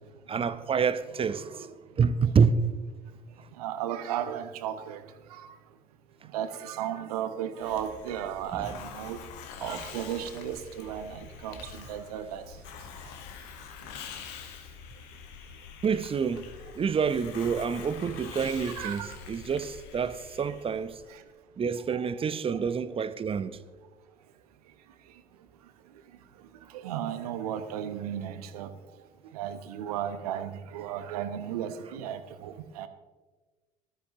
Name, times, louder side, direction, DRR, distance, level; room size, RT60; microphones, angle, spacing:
voice 1, 0.3-2.5 8.5-8.7 15.8-16.5 16.8-19.0 19.3-21.0 21.6-23.6, right 6 dB, 30° right, 0.8 m, -27 dB
voice 2, 3.6-5.0 5.4-5.5 6.3-9.2 9.6-12.4 18.7-19.1 21.9-22.0 26.7-28.7 29.3-32.9, right 10 dB, 70° right, 1.0 m, -34 dB
Hiss, 7.6-21.1, left 7 dB, 60° left, 1.3 m, -45 dB
19.5 x 13.0 x 2.9 m
figure-of-eight pair, 60°, 20 cm